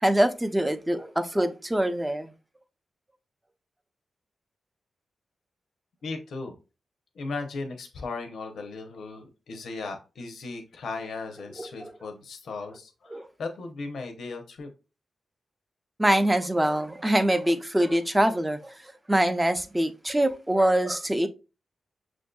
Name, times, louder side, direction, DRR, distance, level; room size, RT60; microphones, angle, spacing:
voice 1, 0.0-2.3 11.6-11.9 13.1-13.3 16.0-21.3, right 1 dB, 15° right, 0.5 m, -24 dB
voice 2, 6.0-6.5 7.1-14.7, left 3 dB, 80° left, 0.7 m, -37 dB
6.0 x 2.6 x 2.3 m
cardioid pair, 65°, 0 cm